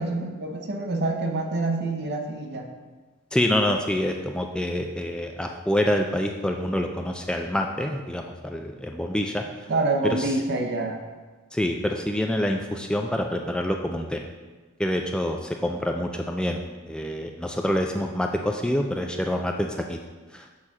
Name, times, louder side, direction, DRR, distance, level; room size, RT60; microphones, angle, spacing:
voice 1, 0.0-2.7 9.7-11.0, right 2 dB, 55° right, 3 dB, 0.9 m, -27 dB
voice 2, 3.3-9.4 10.0-10.3 11.5-14.2 14.8-20.0 20.3-20.5, left 1 dB, 5° left, 3 dB, 0.3 m, -26 dB
6.5 x 4.2 x 6.0 m, 1.3 s
head